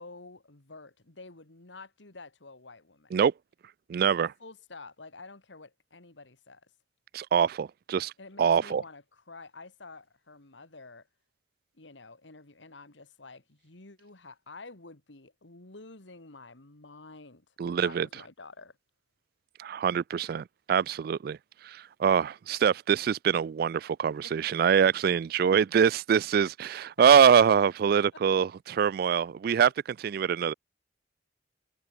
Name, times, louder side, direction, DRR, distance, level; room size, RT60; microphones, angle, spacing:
voice 1, 0.0-3.1 4.4-6.7 8.2-11.1 11.7-18.8 24.1-24.3 26.4-26.5 27.0-27.1 28.1-28.2, left 3 dB, 80° left, 2.2 m, -49 dB
voice 2, 3.9-4.3 7.1-8.1 8.4-8.8 17.6-18.1 19.6-21.4 21.6-30.5, right 7 dB, 55° right, 0.3 m, -24 dB
head